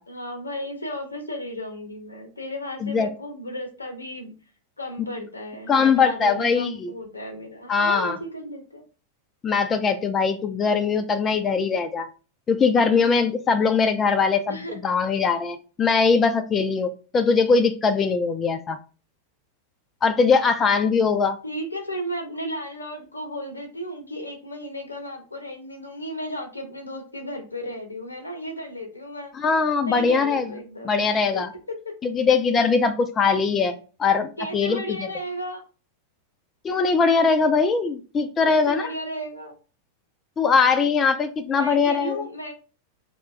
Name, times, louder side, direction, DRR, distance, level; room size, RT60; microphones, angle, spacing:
voice 1, 0.1-4.3 4.8-8.8 14.5-14.7 21.4-29.3 29.9-31.0 34.4-35.6 38.4-39.5 40.7-40.9 41.5-42.5, equal, 80° left, 5 dB, 0.6 m, -34 dB
voice 2, 5.7-6.9 7.7-8.2 9.4-12.1 12.5-18.8 20.0-21.4 29.3-30.5 30.8-31.5 32.0-34.8 36.6-38.9 40.4-42.2, left 5 dB, 20° left, 8 dB, 0.3 m, -21 dB
2.8 x 2.2 x 3.2 m, 0.35 s
figure-of-eight pair, 90°, 0 cm